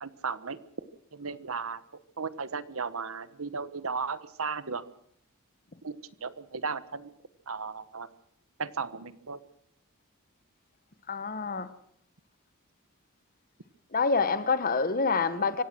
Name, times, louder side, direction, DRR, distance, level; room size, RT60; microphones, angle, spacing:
voice 1, 0.0-0.6 1.1-1.8 2.2-4.9 5.8-7.1 7.5-8.1 8.6-9.4, right 5 dB, 65° right, 1.2 m, -35 dB
voice 2, 11.1-11.7 13.9-15.6, left 4 dB, 40° left, 1.4 m, -27 dB
25.0 x 17.5 x 6.2 m
head